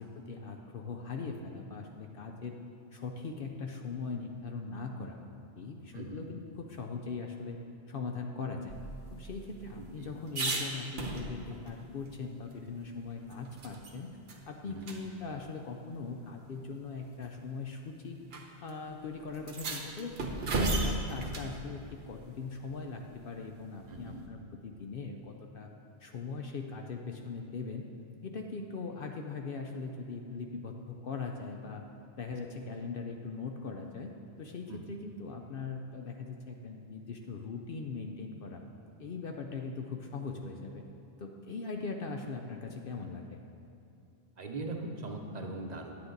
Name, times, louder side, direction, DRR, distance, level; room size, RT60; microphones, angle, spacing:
voice 1, 0.0-2.6 2.9-5.2 5.6-7.6 7.9-8.8 9.1-18.2 18.6-20.4 20.6-25.7 26.0-27.9 28.2-31.8 32.2-34.1 34.4-38.6 39.0-40.8 41.2-43.4, left 4 dB, 60° left, 2 dB, 0.7 m, -40 dB
voice 2, 5.9-6.2 9.8-10.1 14.7-14.8 23.9-24.2 34.7-34.8 44.4-46.0, right 2 dB, 40° right, 2 dB, 0.9 m, -40 dB
sound 1, 8.7-11.7 12.1-12.2 12.5-13.9 14.3-14.4 14.8-15.0 16.0-16.1 17.0-17.3 18.3-18.4 18.7-18.8 19.3-21.5 23.8-24.3, right 2 dB, 60° right, 1.1 m, -35 dB
9.6 x 8.7 x 3.9 m, 2.7 s
omnidirectional pair, 1.2 m